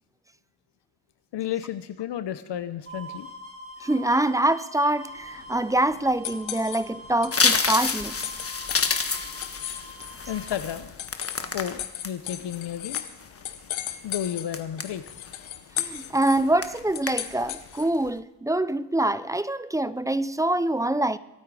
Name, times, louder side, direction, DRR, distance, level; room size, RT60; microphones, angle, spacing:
voice 1, 1.3-3.3 10.3-10.9 11.5-13.0 14.0-15.0, left 10 dB, 65° left, 0.8 m, -32 dB
sound 1, 2.9-10.6, equal, 30° right, 4.0 m, -44 dB
voice 2, 3.8-8.3 15.8-21.2, right 1 dB, 5° right, 0.5 m, -25 dB
sound 2, 5.2-18.0, left 12 dB, 80° left, 1.1 m, -38 dB
sound 3, 7.3-12.1 12.6-13.4 13.9-14.1 14.5-15.3 15.8-16.1 16.3-16.8 17.1-17.5 17.8-18.1, left 4 dB, 30° left, 1.5 m, -28 dB
23.5 x 8.8 x 4.8 m
cardioid pair, 65°, 45 cm